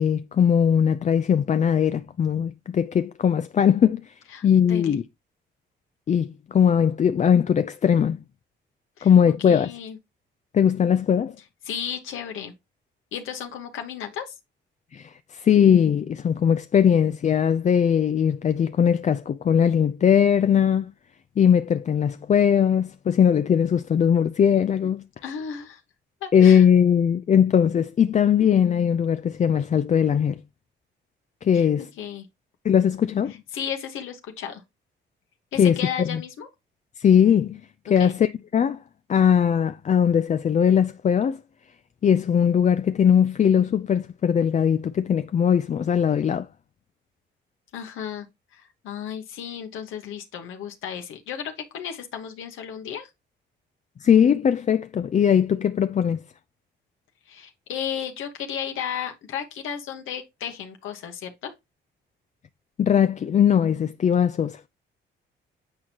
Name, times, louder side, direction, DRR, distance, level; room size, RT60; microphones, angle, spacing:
voice 1, 0.0-4.1 4.4-5.0 6.1-8.2 9.0-9.7 10.5-11.4 14.9-20.9 21.4-25.0 26.3-30.4 31.4-31.9 32.6-33.3 35.6-36.2 37.0-37.6 37.9-38.8 39.1-41.4 42.0-46.5 54.0-56.2 62.8-64.6, left 8 dB, 35° left, 0.4 m, -20 dB
voice 2, 4.3-5.0 9.0-9.1 9.4-10.0 11.6-12.5 13.1-14.3 25.2-25.8 26.2-26.6 31.5-31.7 32.0-32.3 33.5-34.6 35.5-36.5 37.9-38.1 47.7-48.3 48.5-53.1 57.3-61.5, left 8 dB, 85° left, 1.3 m, -34 dB
8.4 x 4.4 x 2.9 m
cardioid pair, 90°, 20 cm